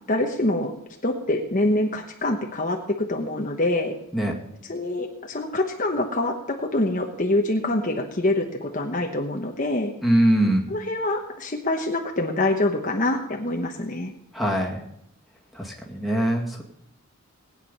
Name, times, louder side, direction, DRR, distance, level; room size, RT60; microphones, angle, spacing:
voice 1, 0.1-0.7 1.0-4.0 4.6-9.9 10.7-14.1, left 1 dB, 35° left, 2 dB, 1.1 m, -25 dB
voice 2, 10.0-10.7 14.3-14.8 15.5-16.6, right 1 dB, ahead, -1 dB, 2.2 m, -22 dB
19.0 x 9.2 x 5.5 m, 0.77 s
head